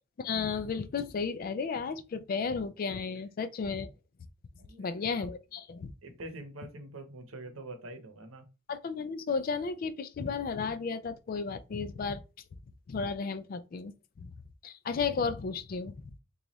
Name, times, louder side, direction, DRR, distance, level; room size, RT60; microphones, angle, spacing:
voice 1, 0.2-3.9 4.8-5.9 8.7-12.2 12.9-13.9 14.2-14.3 14.6-16.2, left 5 dB, 45° left, 0.3 m, -33 dB
voice 2, 4.6-5.3 6.0-8.4, right 2 dB, 85° right, 0.8 m, -45 dB
3.0 x 2.3 x 4.0 m
head